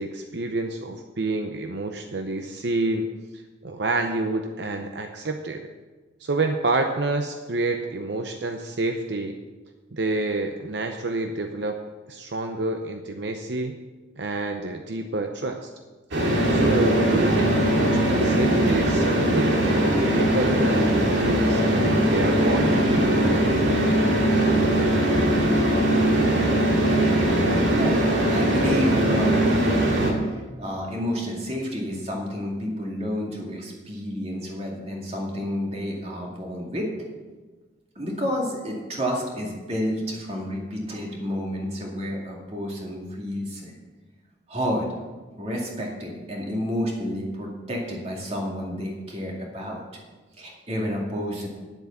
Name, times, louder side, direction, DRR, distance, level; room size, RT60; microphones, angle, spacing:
voice 1, 0.0-3.1 3.6-5.7 6.2-9.3 9.9-11.8 12.1-13.8 14.2-15.7 16.5-23.1, right 2 dB, 70° right, 5 dB, 0.7 m, -28 dB
sound 1, 16.1-30.1, right 1 dB, 85° right, 2.4 m, -20 dB
voice 2, 27.2-29.5 30.2-36.9 38.0-43.7 44.5-44.9 45.4-49.8 50.4-51.5, equal, 35° right, -1 dB, 2.3 m, -30 dB
10.0 x 7.9 x 7.1 m, 1.3 s
head